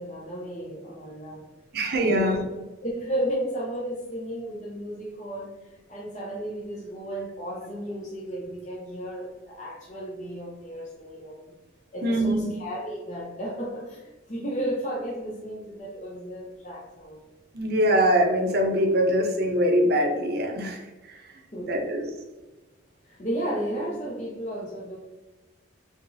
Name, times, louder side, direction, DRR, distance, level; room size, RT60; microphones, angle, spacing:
voice 1, 0.0-1.5 2.0-2.5 2.8-11.5 11.9-17.2 21.5-21.7 23.0-25.0, right 1 dB, 40° left, -4 dB, 0.7 m, -33 dB
voice 2, 1.7-2.4 12.0-12.5 17.5-21.3 21.6-22.1, equal, 50° right, 3 dB, 0.6 m, -23 dB
3.9 x 3.3 x 2.6 m, 1.2 s
head